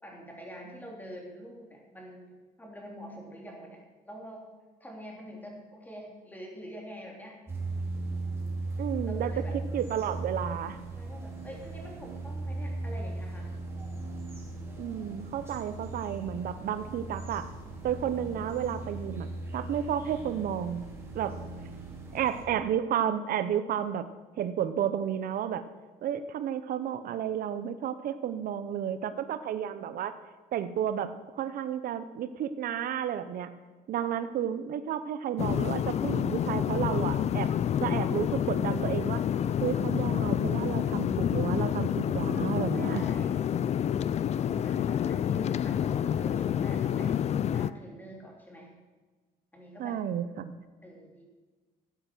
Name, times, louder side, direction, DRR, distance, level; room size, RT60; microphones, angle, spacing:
voice 1, 0.0-4.5 4.8-7.4 9.0-9.6 10.9-13.6 34.0-34.2 42.7-43.4 44.4-48.7 49.5-50.0 50.8-51.2, equal, 10° left, -1 dB, 3.3 m, -46 dB
sound 1, 7.5-22.4, right 2 dB, 15° right, 3.4 m, -38 dB
voice 2, 8.8-9.3 9.7-10.8 14.8-17.5 17.8-19.3 19.5-20.8 21.1-21.4 22.1-24.1 24.4-25.6 26.0-30.2 30.5-33.5 33.9-37.5 37.8-39.2 39.6-43.0 49.8-50.5, right 9 dB, 60° right, 11 dB, 0.8 m, -32 dB
sound 2, 35.4-47.7, left 9 dB, 40° left, 0.4 m, -28 dB
13.0 x 8.0 x 6.2 m, 1.3 s
cardioid pair, 110°, 17 cm